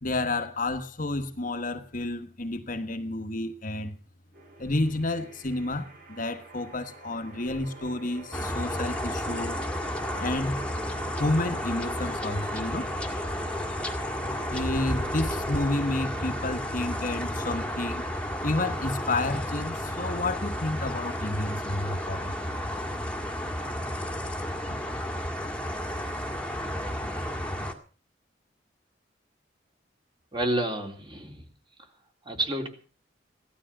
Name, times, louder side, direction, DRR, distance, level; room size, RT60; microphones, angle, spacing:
voice 1, 0.0-4.0 4.6-9.6 10.2-10.6 11.2-12.9 14.5-18.1 18.4-22.6, left 2 dB, 45° left, 1.3 m, -30 dB
sound 1, 4.3-23.3, right 2 dB, 55° right, 5.8 m, -48 dB
sound 2, 8.3-27.7, left 1 dB, 5° left, 1.9 m, -32 dB
voice 2, 30.3-31.4 32.3-32.7, right 1 dB, 25° right, 3.5 m, -29 dB
17.0 x 13.0 x 6.0 m
head